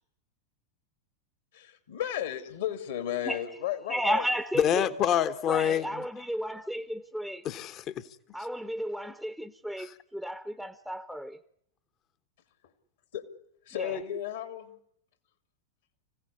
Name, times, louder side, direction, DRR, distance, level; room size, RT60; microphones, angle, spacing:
voice 1, 1.5-4.3 13.1-13.2 13.7-14.7, left 10 dB, 65° left, 2.3 m, -34 dB
voice 2, 3.9-4.9 5.5-7.4 8.3-11.4 13.8-14.0, equal, ahead, 0.9 m, -33 dB
voice 3, 4.5-6.0 7.4-8.1 9.8-10.0, left 9 dB, 35° left, 1.1 m, -27 dB
25.5 x 16.0 x 9.8 m
figure-of-eight pair, 90°, 0 cm